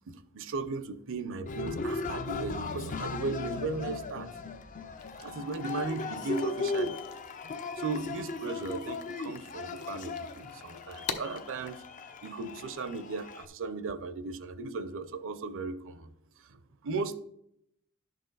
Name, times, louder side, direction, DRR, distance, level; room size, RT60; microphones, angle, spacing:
voice 1, 0.1-4.3 5.2-6.9 7.8-11.8 12.2-16.1 16.4-17.2, right 3 dB, 60° right, 13 dB, 0.6 m, -36 dB
Cheering, 1.5-13.5, left 3 dB, 35° left, 0.5 m, -37 dB
sound 1, 5.0-11.8, left 6 dB, 70° left, 0.8 m, -46 dB
11.0 x 6.6 x 4.0 m, 0.77 s
head